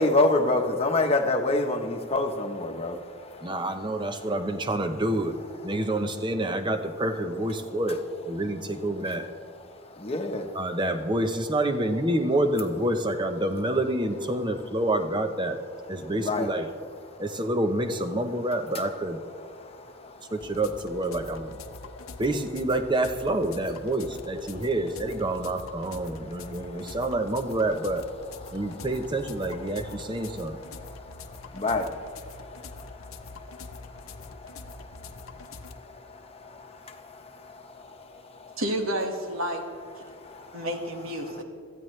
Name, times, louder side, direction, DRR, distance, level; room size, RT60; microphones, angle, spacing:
voice 1, 0.0-4.3 5.7-5.8 9.0-9.2 9.6-10.7 14.4-14.5 15.9-16.5 17.0-17.2 19.4-20.4 21.7-22.2 24.5-24.7 26.1-27.1 28.3-29.1 29.4-38.6 39.9-40.7 41.2-41.4, left 2 dB, 30° left, 4 dB, 1.1 m, -31 dB
voice 2, 3.4-5.4 5.6-9.3 10.5-15.6 15.9-16.7 17.2-19.2 20.3-21.6 22.2-28.1 28.5-30.6, right 1 dB, 20° right, 7 dB, 0.8 m, -28 dB
sound 1, 20.4-35.8, left 3 dB, 80° left, 0.9 m, -44 dB
voice 3, 38.6-39.6 40.5-41.4, equal, 70° right, 3 dB, 1.8 m, -30 dB
21.5 x 14.5 x 3.3 m, 2.2 s
head